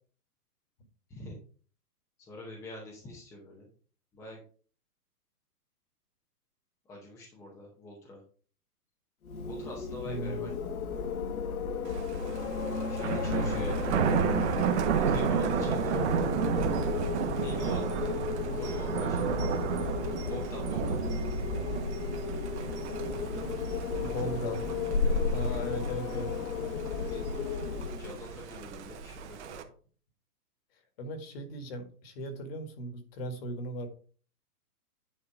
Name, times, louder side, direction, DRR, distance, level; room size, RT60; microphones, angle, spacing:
voice 1, 2.2-3.7 4.1-4.4 6.9-8.2 9.4-10.7 12.9-13.8 14.1-16.1 17.4-18.2 18.5-19.5 20.2-21.0 25.0-25.6 26.9-27.2 27.8-29.6, left 2 dB, 5° left, -2 dB, 0.7 m, -45 dB
Wind, 9.2-28.3, left 4 dB, 60° left, 1.5 m, -34 dB
voice 2, 10.0-10.5 13.4-13.6 24.0-24.6 25.3-26.3 31.0-33.9, equal, 40° left, 7 dB, 1.7 m, -37 dB
Thunder, 11.9-29.6, right 7 dB, 45° right, 1.3 m, -32 dB
9.8 x 4.0 x 4.8 m, 0.42 s
hypercardioid pair, 160°, 47 cm